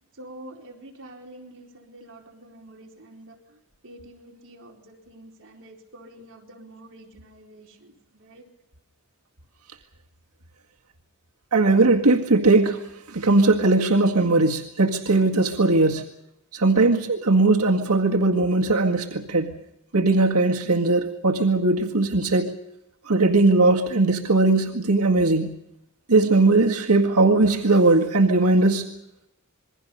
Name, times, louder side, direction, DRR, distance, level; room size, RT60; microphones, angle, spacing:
voice 1, 0.2-8.5, right 1 dB, 60° right, 0 dB, 4.2 m, -47 dB
voice 2, 11.5-16.1 16.5-19.6 19.9-22.6 23.1-25.6 26.1-28.9, right 2 dB, 80° right, 1 dB, 1.9 m, -19 dB
27.5 x 22.0 x 5.4 m, 0.85 s
head